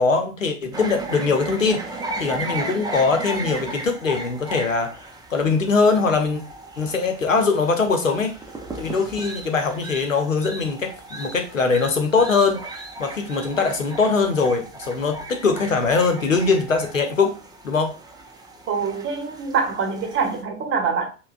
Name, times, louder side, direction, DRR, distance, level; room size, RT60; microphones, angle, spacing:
voice 1, 0.0-5.0 5.3-6.4 6.8-8.3 8.8-12.6 13.0-17.4 17.6-17.9, left 4 dB, 90° left, 0.8 m, -21 dB
sound 1, 0.7-20.4, right 2 dB, 10° right, 0.6 m, -36 dB
voice 2, 18.7-21.1, right 5 dB, 30° right, 1.0 m, -24 dB
5.5 x 2.3 x 2.4 m
figure-of-eight pair, 80°, 38 cm